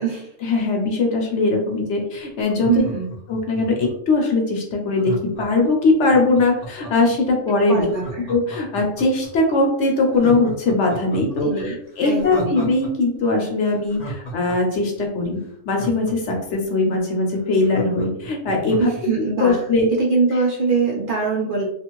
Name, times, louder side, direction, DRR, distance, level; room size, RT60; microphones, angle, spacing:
voice 1, 0.4-2.7 3.3-7.8 8.3-15.4 15.7-18.9 19.2-19.9, left 3 dB, 65° left, 1 dB, 1.0 m, -20 dB
Laughter, 2.4-4.1 5.0-7.2 7.9-9.3 9.7-9.8 10.1-12.9 13.2-13.3 13.6-16.6 17.0-17.1 17.3-19.0 19.4-19.5, right 1 dB, 40° left, 0.7 m, -34 dB
voice 2, 2.7-3.1 7.7-8.3 11.4-11.7 12.0-12.6 18.8-19.6 20.0-21.6, right 4 dB, 50° right, -3 dB, 0.7 m, -22 dB
2.5 x 2.5 x 2.9 m, 0.71 s
omnidirectional pair, 1.3 m